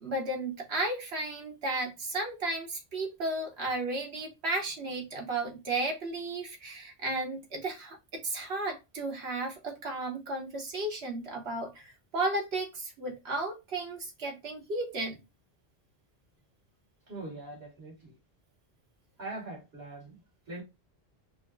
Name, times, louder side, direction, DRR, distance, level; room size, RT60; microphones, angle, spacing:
voice 1, 0.0-15.2, right 2 dB, 90° right, 1.3 m, -34 dB
voice 2, 17.1-18.2 19.2-20.6, right 2 dB, 75° right, 2.2 m, -42 dB
5.5 x 2.0 x 2.6 m
omnidirectional pair, 1.0 m